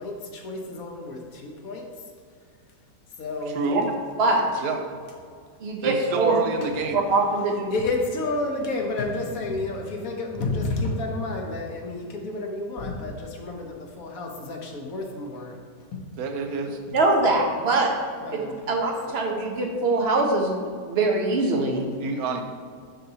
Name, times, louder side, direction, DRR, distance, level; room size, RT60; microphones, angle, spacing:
voice 1, 0.0-1.9 3.2-3.6 6.6-6.7 7.7-15.6 15.9-16.0 18.2-18.8 19.1-19.2, left 2 dB, 60° left, 2 dB, 1.2 m, -30 dB
voice 2, 3.5-3.9 4.6-4.8 5.8-7.0 16.2-16.8 22.0-22.4, right 4 dB, 65° right, 5 dB, 1.1 m, -27 dB
voice 3, 5.6-6.4 6.9-7.7 16.9-17.9 18.3-18.4 18.7-20.5 20.9-21.8, right 2 dB, 50° right, 2 dB, 0.9 m, -23 dB
7.7 x 6.6 x 2.8 m, 2.1 s
omnidirectional pair, 1.9 m